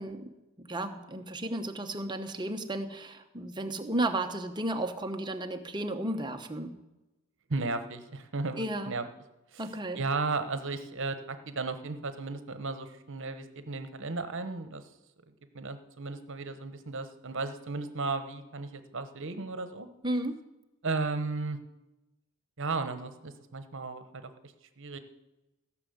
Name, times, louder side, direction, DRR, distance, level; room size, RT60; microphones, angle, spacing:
voice 1, 0.0-6.8 8.6-8.9 9.6-10.0 20.0-20.4, right 1 dB, 20° right, 6 dB, 0.9 m, -33 dB
voice 2, 7.5-9.0 9.5-9.7 10.0-14.9 15.5-19.9 20.8-21.6 22.6-25.0, right 3 dB, 60° right, 9 dB, 1.1 m, -35 dB
16.5 x 6.2 x 7.9 m, 1.0 s
head